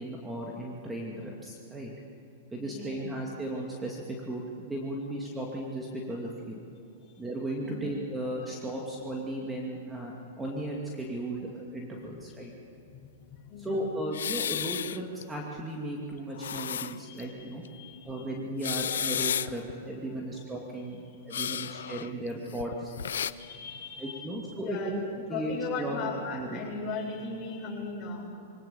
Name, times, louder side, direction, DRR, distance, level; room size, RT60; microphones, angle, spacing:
voice 1, 0.0-1.9 2.5-6.6 7.2-12.5 13.6-17.6 18.0-22.9 24.0-25.0 25.3-26.6, right 1 dB, 10° right, -2 dB, 2.4 m, -36 dB
voice 2, 2.6-3.0 7.6-7.8 12.9-13.1 13.4-14.0 17.0-18.2 20.1-20.2 21.1-21.2 23.4-24.2 24.6-28.2, left 4 dB, 25° left, -4 dB, 7.4 m, -38 dB
sound 1, 14.1-15.2 15.6-15.7 16.2-17.2 17.7-17.8 18.5-19.7 21.3-23.3, left 9 dB, 85° left, 0.6 m, -32 dB
23.5 x 18.0 x 7.2 m, 2.7 s
hypercardioid pair, 130°, 0 cm